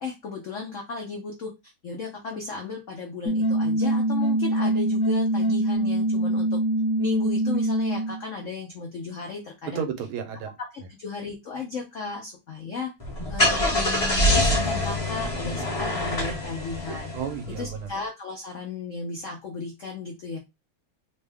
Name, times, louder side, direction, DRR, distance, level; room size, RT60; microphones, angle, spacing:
voice 1, 0.0-1.5 1.8-6.6 7.0-9.8 10.6-12.9 13.3-17.1 17.5-20.4, left 4 dB, 85° left, 0.6 m, -35 dB
sound 1, 3.3-8.2, right 1 dB, 50° left, 1.3 m, -24 dB
voice 2, 9.7-10.5 17.1-17.9, right 7 dB, 85° right, 1.6 m, -32 dB
Car / Engine starting, 13.0-17.7, left 1 dB, 25° left, 0.7 m, -25 dB
3.6 x 2.2 x 3.4 m
omnidirectional pair, 2.3 m